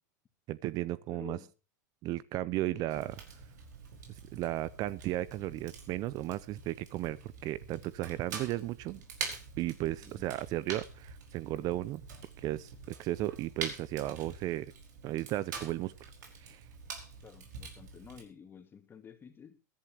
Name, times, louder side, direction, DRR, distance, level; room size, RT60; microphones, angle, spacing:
voice 1, 0.5-1.4 2.0-3.1 4.3-9.0 9.6-12.0 12.4-12.7 13.0-14.7 15.0-16.1 16.4-16.6, right 15 dB, 40° right, 20 dB, 0.6 m, -35 dB
voice 2, 1.1-1.5 2.7-2.8 10.0-10.3 17.2-19.6, left 7 dB, 20° left, 7 dB, 2.5 m, -51 dB
Fire, 2.9-18.2, right 5 dB, 75° right, 5.0 m, -45 dB
22.0 x 11.0 x 3.0 m, 0.32 s
hypercardioid pair, 115°, 10 cm